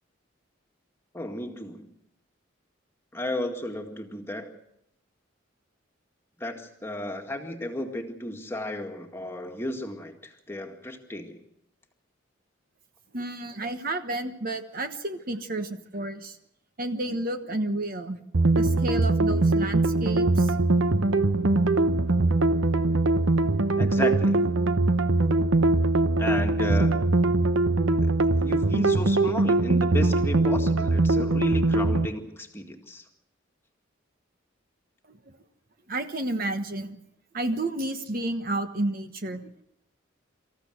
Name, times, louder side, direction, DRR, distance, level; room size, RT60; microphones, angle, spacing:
voice 1, 1.1-1.9 3.1-4.5 6.4-11.4 23.8-24.4 26.2-27.2 28.0-28.1 28.4-33.0, left 1 dB, 10° left, 3 dB, 2.0 m, -34 dB
voice 2, 13.1-16.4 16.8-18.2 18.5-20.7 35.1-35.4 35.9-37.0 37.3-39.6, right 2 dB, 45° right, 8 dB, 1.2 m, -31 dB
sound 1, 18.3-32.1, right 2 dB, 80° right, 1.0 m, -22 dB
25.5 x 14.5 x 8.0 m, 0.81 s
head